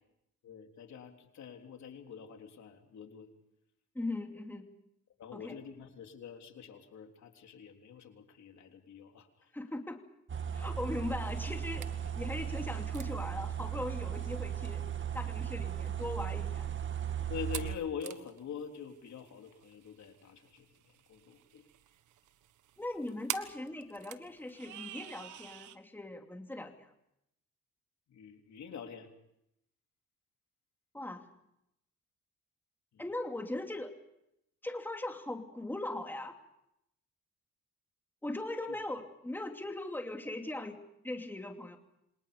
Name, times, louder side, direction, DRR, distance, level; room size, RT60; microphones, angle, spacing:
voice 1, 0.4-3.3 5.2-9.5 17.3-21.7 28.1-29.1 32.9-33.0 38.7-38.8, left 7 dB, 65° left, 4 dB, 3.7 m, -45 dB
voice 2, 3.9-4.7 5.3-5.6 9.5-10.0 10.5-14.8 15.1-16.7 22.8-26.9 30.9-31.3 33.0-33.9 34.6-36.4 38.2-40.8 41.0-41.8, left 1 dB, 5° left, 4 dB, 2.6 m, -39 dB
sound 1, 10.3-17.8, right 9 dB, 40° right, 1.8 m, -36 dB
sound 2, 11.2-25.8, right 12 dB, 80° right, 1.5 m, -48 dB
28.0 x 26.5 x 5.4 m, 0.79 s
cardioid pair, 90°, 30 cm